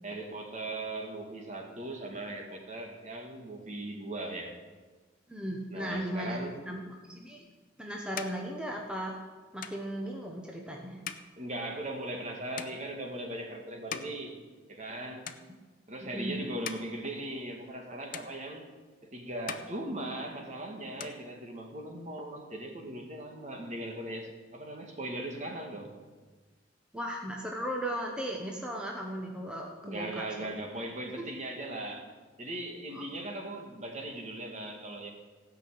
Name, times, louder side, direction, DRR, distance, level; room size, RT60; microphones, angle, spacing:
voice 1, 0.0-4.6 5.7-6.6 11.4-14.4 14.7-15.3 15.9-18.7 19.0-25.9 29.8-32.1 32.4-35.1, right 1 dB, 40° right, 2 dB, 2.0 m, -39 dB
voice 2, 5.3-6.4 6.7-7.4 7.8-9.2 9.5-11.0 16.1-16.4 26.9-30.3 32.9-33.0, equal, 5° right, -1 dB, 1.2 m, -36 dB
sound 1, 7.3-15.0 15.2-15.9 16.4-17.9 18.1-19.0 19.3-20.5 20.8-21.9, left 8 dB, 50° left, 0.7 m, -45 dB
16.5 x 6.0 x 8.7 m, 1.3 s
head